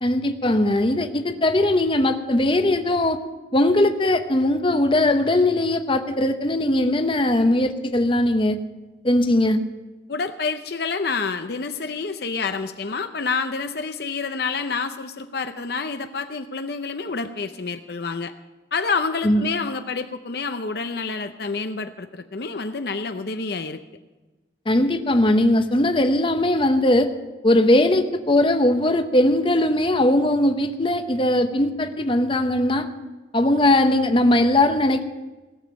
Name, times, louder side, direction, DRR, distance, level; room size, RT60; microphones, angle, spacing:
voice 1, 0.0-3.2 3.5-8.6 9.0-9.6 19.2-19.4 24.7-27.1 27.4-32.9 33.3-35.0, left 1 dB, 25° left, 8 dB, 0.8 m, -19 dB
voice 2, 10.1-18.3 18.7-23.8, left 4 dB, 55° left, 8 dB, 0.6 m, -28 dB
18.0 x 7.3 x 8.6 m, 1.2 s
head